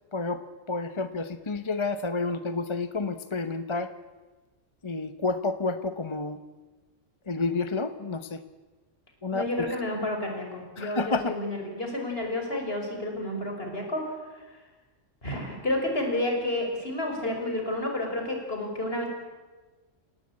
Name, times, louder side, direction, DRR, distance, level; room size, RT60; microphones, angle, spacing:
voice 1, 0.1-3.9 4.8-6.4 7.3-8.4 9.2-9.7 10.8-11.4, left 3 dB, 25° left, 11 dB, 0.8 m, -30 dB
voice 2, 9.3-14.0 15.2-19.1, left 1 dB, 50° left, 2 dB, 5.9 m, -30 dB
29.5 x 17.0 x 8.7 m, 1.3 s
omnidirectional pair, 1.3 m